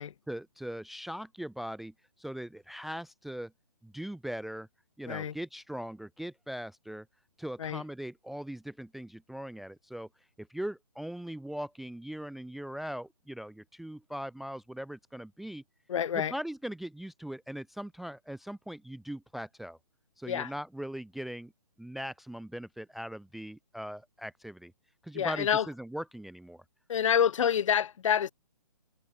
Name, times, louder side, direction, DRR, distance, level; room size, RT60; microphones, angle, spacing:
voice 1, 0.3-1.9 2.2-3.5 3.8-4.7 5.0-7.1 7.4-10.1 10.4-15.6 16.1-19.8 20.2-21.5 21.8-24.7 25.0-26.6, equal, ahead, 0.6 m, -40 dB
voice 2, 15.9-16.3 20.3-20.5 25.1-25.7 26.9-28.3, left 8 dB, 50° left, 1.0 m, -27 dB
hypercardioid pair, 155°, 21 cm